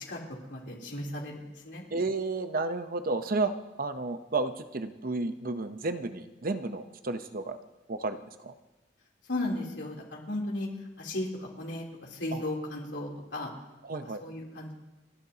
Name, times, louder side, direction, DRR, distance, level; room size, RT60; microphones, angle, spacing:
voice 1, 0.1-1.8 9.3-10.7 11.0-13.5 14.2-14.7, left 1 dB, 75° left, -2 dB, 3.3 m, -35 dB
voice 2, 1.9-3.5 3.8-7.6 7.9-8.2 8.4-8.5 12.3-12.4 13.8-14.2, right 3 dB, 50° right, 9 dB, 0.8 m, -32 dB
29.5 x 12.0 x 2.9 m, 1.1 s
head